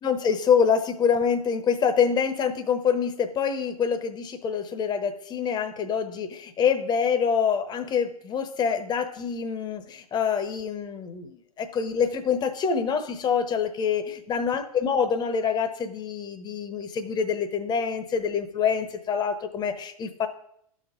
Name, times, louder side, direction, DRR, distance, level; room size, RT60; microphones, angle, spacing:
voice 1, 0.0-20.3, left 6 dB, 25° left, 10 dB, 1.0 m, -26 dB
12.5 x 4.4 x 5.0 m, 0.71 s
figure-of-eight pair, 95°, 19 cm